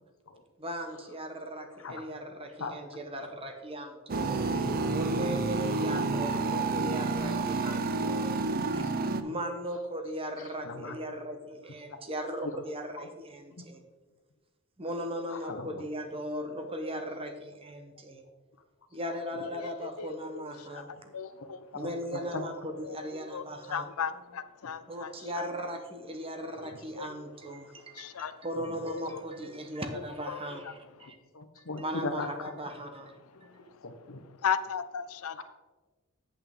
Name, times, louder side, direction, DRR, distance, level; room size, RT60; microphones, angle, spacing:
voice 1, 0.6-4.3 4.9-8.3 9.2-13.8 14.8-18.2 18.9-21.1 21.7-23.9 24.9-28.1 28.4-31.2 31.8-33.1, equal, 25° right, 6 dB, 1.0 m, -38 dB
voice 2, 2.6-3.0 4.5-4.6 6.6-6.7 8.8-8.9 9.2-9.4 10.4-11.0 12.5-12.6 13.0-13.1 13.5-13.6 15.3-15.8 19.3-19.4 21.4-21.5 21.7-22.4 28.0-28.1 31.1-32.5 33.3-34.2 35.4-35.5, left 3 dB, 65° left, 7 dB, 1.0 m, -40 dB
sound 1, 4.1-9.2, right 3 dB, 45° right, 0.5 m, -29 dB
voice 3, 19.5-21.7 22.8-25.5 26.6-27.1 27.8-29.2 29.9-30.7 31.0-31.1 33.2-33.9 34.4-35.4, left 7 dB, 85° left, 12 dB, 0.5 m, -37 dB
8.6 x 8.3 x 3.6 m, 1.3 s
head